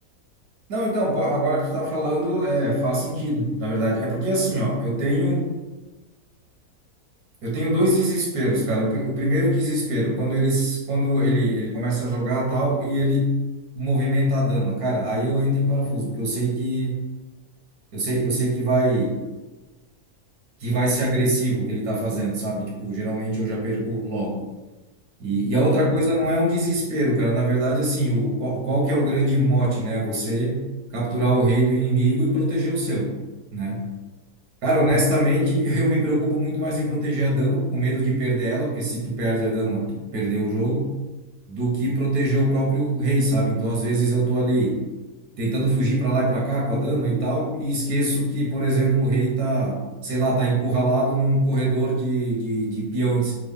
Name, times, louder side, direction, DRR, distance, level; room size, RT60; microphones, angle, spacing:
voice 1, 0.7-5.6 7.4-13.4 13.7-17.0 17.9-19.2 20.6-24.4 25.2-30.7 30.9-33.1 33.5-33.9 34.6-40.9 41.5-44.8 45.4-53.4, right 1 dB, 85° right, -2 dB, 1.5 m, -23 dB
3.7 x 2.0 x 3.5 m, 1.1 s
omnidirectional pair, 1.5 m